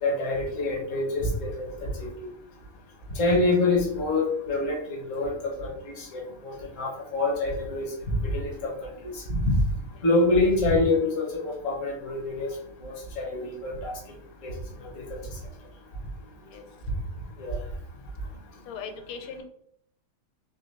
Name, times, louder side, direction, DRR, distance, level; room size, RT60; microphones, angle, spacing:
voice 1, 0.0-2.1 3.2-8.7 9.0-9.1 9.4-9.6 10.0-12.5 12.8-14.0 14.4-14.5 17.4-17.6, left 2 dB, 45° left, -1 dB, 1.3 m, -26 dB
voice 2, 18.7-19.4, left 5 dB, 90° left, 5 dB, 1.5 m, -39 dB
4.3 x 3.0 x 3.2 m, 0.67 s
omnidirectional pair, 2.3 m